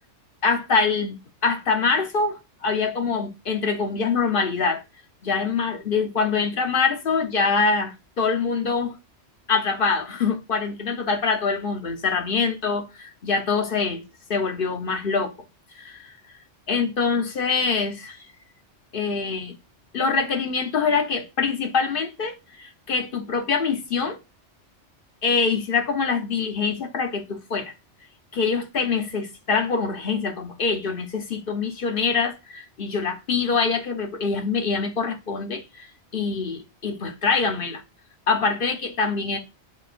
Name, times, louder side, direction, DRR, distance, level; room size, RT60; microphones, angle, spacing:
voice 1, 0.4-4.8 5.2-9.0 9.5-14.0 14.3-15.3 15.7-16.2 16.7-18.3 18.9-19.5 19.9-24.2 25.2-27.7 28.3-37.8 38.3-39.4, left 5 dB, 50° left, 1.1 m, -24 dB
11.0 x 3.8 x 2.5 m
omnidirectional pair, 1.2 m